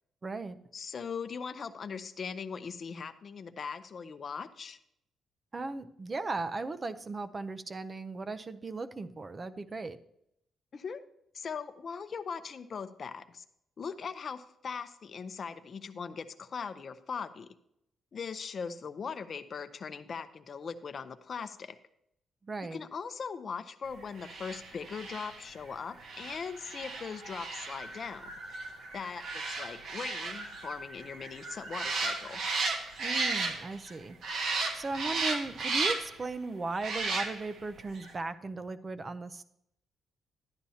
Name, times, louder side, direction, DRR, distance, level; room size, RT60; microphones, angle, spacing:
voice 1, 0.2-0.6 5.5-10.0 22.4-22.8 33.0-34.2 34.7-39.4, right 3 dB, 30° right, 11 dB, 0.5 m, -37 dB
voice 2, 0.7-4.8 10.7-11.0 11.3-13.4 13.8-17.5 18.1-21.8 22.7-28.3 28.9-32.4, left 6 dB, 45° left, 9 dB, 0.6 m, -40 dB
sound 1, 24.2-33.9 34.2-36.2 36.8-37.6 38.0-38.1, right 3 dB, 75° right, 1.4 m, -35 dB
11.5 x 10.0 x 2.8 m, 0.77 s
cardioid pair, 115°, 0 cm